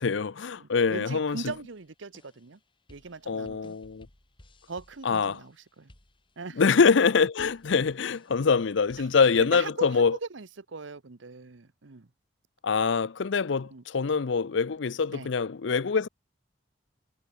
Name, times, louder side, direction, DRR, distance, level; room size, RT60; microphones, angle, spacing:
voice 1, 0.0-1.4 3.3-4.1 5.0-5.4 6.6-10.2 12.6-16.1, left 5 dB, 75° left, 0.6 m, -24 dB
voice 2, 0.6-2.6 2.9-3.8 4.7-5.9 6.4-6.6 9.0-9.1 9.4-12.1 13.7-13.8 15.1-15.3, right 4 dB, 85° right, 0.9 m, -39 dB
sound 1, 1.4-9.5, left 1 dB, 25° left, 2.4 m, -60 dB
head